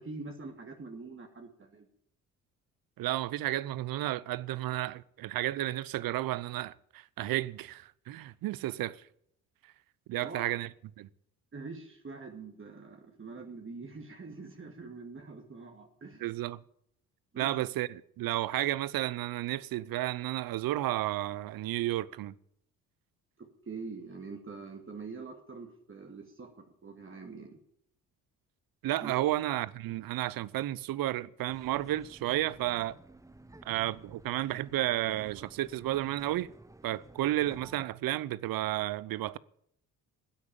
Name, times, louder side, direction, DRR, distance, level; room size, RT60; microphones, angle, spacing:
voice 1, 0.0-1.9 10.2-10.4 11.5-16.2 17.3-17.5 23.4-27.6 29.0-29.2, right 4 dB, 35° right, 2.2 m, -44 dB
voice 2, 3.0-9.0 10.1-10.7 11.0-11.1 16.2-16.6 17.4-22.3 28.8-33.0 33.7-36.5 36.8-39.4, right 15 dB, 65° right, 0.7 m, -32 dB
sound 1, 31.5-37.9, right 2 dB, 10° right, 1.0 m, -54 dB
15.5 x 8.4 x 8.9 m
supercardioid pair, 60°, 37 cm